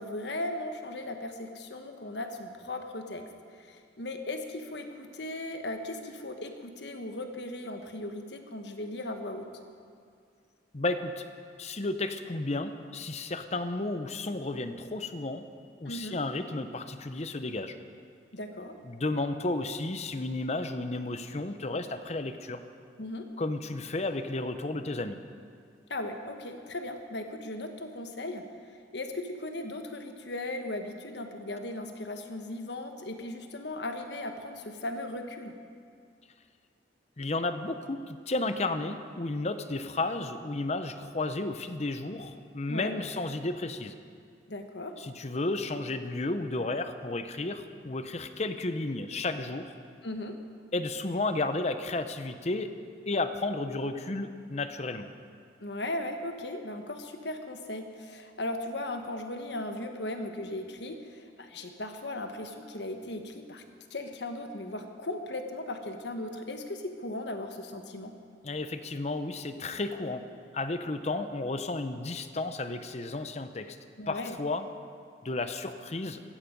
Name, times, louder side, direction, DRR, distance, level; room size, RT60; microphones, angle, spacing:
voice 1, 0.0-3.2 3.5-9.5 15.9-16.2 18.3-18.7 23.0-23.3 25.9-28.4 28.9-35.5 42.7-42.9 44.5-44.9 50.0-50.3 55.6-63.6 63.9-68.1 74.0-74.4, left 1 dB, 75° left, 6 dB, 1.3 m, -37 dB
voice 2, 10.7-11.2 11.6-15.4 15.8-17.8 18.8-22.6 23.4-25.2 37.2-43.9 45.0-49.7 50.7-52.7 53.1-55.1 68.4-70.2 70.5-73.8 74.1-74.7 75.2-76.2, left 2 dB, 40° left, 10 dB, 0.8 m, -32 dB
16.0 x 14.5 x 5.3 m, 2.2 s
head